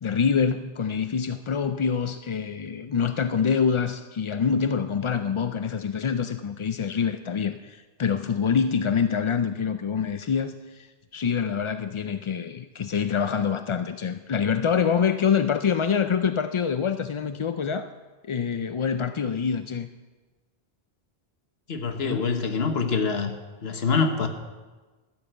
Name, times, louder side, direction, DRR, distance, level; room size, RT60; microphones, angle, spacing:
voice 1, 0.0-17.9 18.2-19.9 22.0-22.3, left 6 dB, 55° left, 10 dB, 0.3 m, -26 dB
voice 2, 21.7-23.3 23.6-24.3, left 5 dB, 75° left, 6 dB, 1.4 m, -25 dB
13.5 x 7.3 x 7.8 m, 1.3 s
omnidirectional pair, 1.0 m